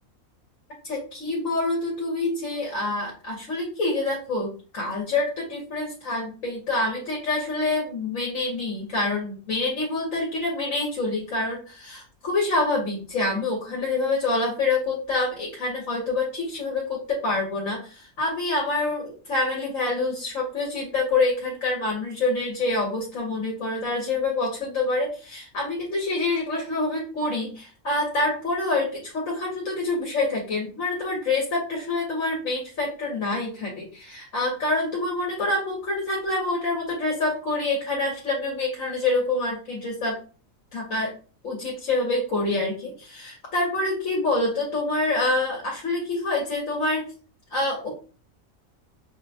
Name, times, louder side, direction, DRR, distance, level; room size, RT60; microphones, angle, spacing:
voice 1, 0.8-40.2 40.7-41.1 41.4-47.1 47.5-47.9, left 2 dB, 75° left, -2 dB, 1.4 m, -26 dB
6.1 x 2.1 x 2.7 m, 0.37 s
omnidirectional pair, 1.4 m